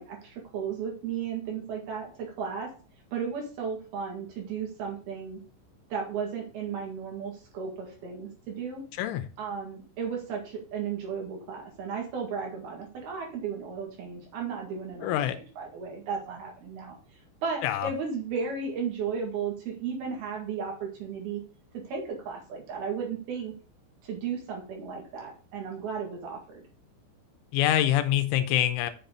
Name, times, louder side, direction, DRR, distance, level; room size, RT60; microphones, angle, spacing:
voice 1, 0.0-2.7 3.1-5.4 5.9-8.8 9.4-17.0 17.4-21.4 21.9-23.5 24.0-26.6, right 6 dB, 60° right, -1 dB, 3.5 m, -34 dB
voice 2, 9.0-9.3 15.0-15.4 17.6-17.9 27.5-28.9, left 12 dB, 85° left, 10 dB, 3.1 m, -25 dB
7.2 x 7.1 x 3.9 m, 0.39 s
omnidirectional pair, 5.7 m